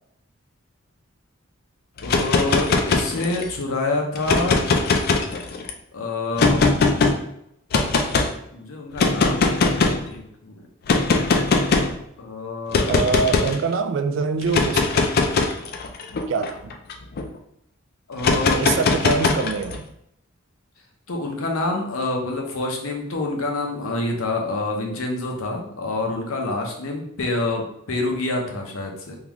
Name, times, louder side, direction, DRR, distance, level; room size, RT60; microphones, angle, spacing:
voice 1, 2.0-4.6 5.9-6.6 8.5-9.6 10.1-10.6 12.2-13.0 18.1-18.6 21.1-29.2, left 2 dB, 85° left, 0.7 m, -27 dB
sound 1, 2.0-3.5 4.2-5.7 6.4-7.1 7.7-8.3 9.0-10.1 10.9-12.0 12.7-13.6 14.4-17.2 18.2-19.8, left 3 dB, 50° left, 0.4 m, -20 dB
voice 2, 12.9-15.1 16.3-16.7 18.6-19.9, right 4 dB, 60° right, 0.3 m, -24 dB
3.6 x 2.3 x 3.0 m
head